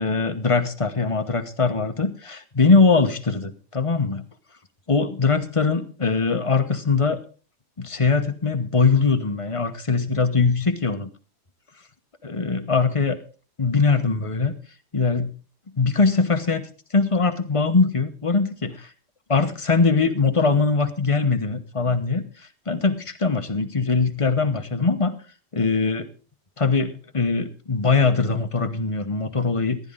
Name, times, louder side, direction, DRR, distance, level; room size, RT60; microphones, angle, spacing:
voice 1, 0.0-4.2 4.9-7.2 7.8-11.1 12.2-13.2 13.6-14.5 14.9-15.3 15.8-16.6 16.9-18.9 19.3-22.2 22.7-25.2 25.5-26.1 26.6-29.8, left 4 dB, 25° left, 8 dB, 0.9 m, -21 dB
15.0 x 11.0 x 3.8 m, 0.37 s
omnidirectional pair, 1.7 m